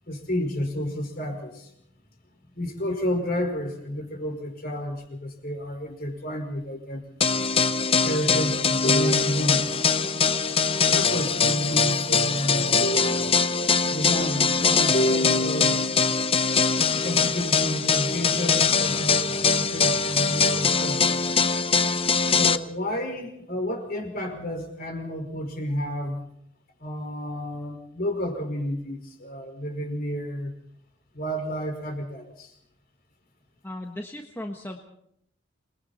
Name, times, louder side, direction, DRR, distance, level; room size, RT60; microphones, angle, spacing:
voice 1, 0.1-1.7 2.5-7.4 8.0-9.8 10.9-16.3 17.0-21.2 22.3-26.2 26.8-30.5 31.1-32.5, equal, 45° left, 4 dB, 5.4 m, -30 dB
sound 1, 7.2-22.6, left 5 dB, 30° left, 0.7 m, -22 dB
voice 2, 33.6-34.8, left 1 dB, 10° left, 2 dB, 1.4 m, -36 dB
28.0 x 21.5 x 4.4 m, 0.71 s
head